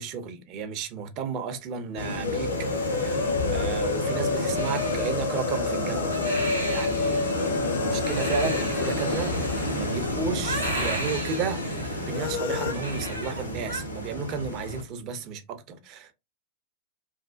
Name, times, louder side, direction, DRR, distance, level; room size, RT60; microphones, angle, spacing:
voice 1, 0.0-6.3 6.7-7.2 7.6-16.1, right 6 dB, 40° right, 0.6 m, -33 dB
sound 1, 2.0-14.8, left 1 dB, 85° left, 0.7 m, -31 dB
sound 2, 2.2-11.1 11.3-11.4 12.1-12.7, left 4 dB, 55° left, 0.4 m, -30 dB
Crying sobbing, 4.5-13.8, right 1 dB, 85° right, 0.8 m, -36 dB
3.2 x 2.1 x 2.4 m
figure-of-eight pair, 90°, 0 cm